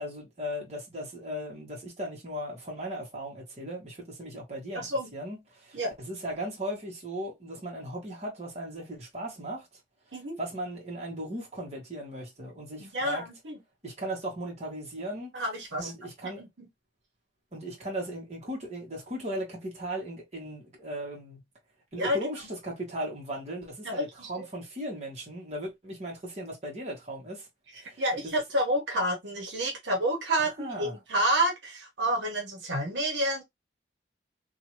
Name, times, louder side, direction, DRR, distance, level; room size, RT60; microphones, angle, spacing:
voice 1, 0.0-4.9 5.1-9.7 10.4-13.2 13.8-15.3 15.8-16.4 17.5-21.4 21.9-27.5 27.8-28.0 30.4-30.9, right 1 dB, 35° right, 1.3 m, -37 dB
voice 2, 4.7-5.1 5.7-5.9 10.1-10.4 12.8-13.6 15.3-15.9 16.2-16.7 22.0-22.2 23.8-24.3 27.7-33.4, right 1 dB, 75° right, 1.1 m, -29 dB
2.8 x 2.4 x 2.9 m
head